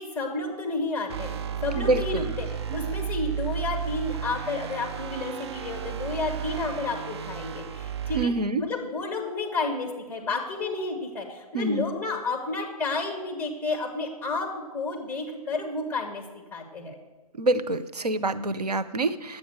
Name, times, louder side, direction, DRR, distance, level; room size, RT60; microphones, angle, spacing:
voice 1, 0.0-2.5 2.7-8.3 8.6-16.2 16.5-17.0, left 3 dB, 10° left, 2 dB, 1.8 m, -31 dB
sound 1, 1.1-8.2, right 8 dB, 40° right, 0.5 m, -33 dB
voice 2, 1.7-2.3 2.7-2.8 8.1-8.6 11.5-11.9 17.4-19.4, right 2 dB, 85° right, 10 dB, 0.7 m, -26 dB
10.5 x 8.4 x 6.6 m, 1.1 s
figure-of-eight pair, 130°, 20 cm